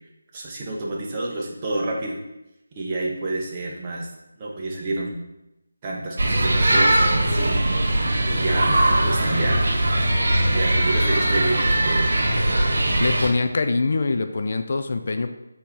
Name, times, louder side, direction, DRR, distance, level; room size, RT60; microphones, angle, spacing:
voice 1, 0.3-2.2 2.7-4.1 4.4-5.2 5.8-7.7 8.3-9.6 10.5-12.1, right 2 dB, 20° right, -3 dB, 1.2 m, -29 dB
sound 1, 6.2-13.3, right 1 dB, 55° right, 2.1 m, -20 dB
voice 2, 13.0-15.3, left 3 dB, 50° left, 7 dB, 0.5 m, -24 dB
4.6 x 4.3 x 5.4 m, 0.90 s
figure-of-eight pair, 165°, 0 cm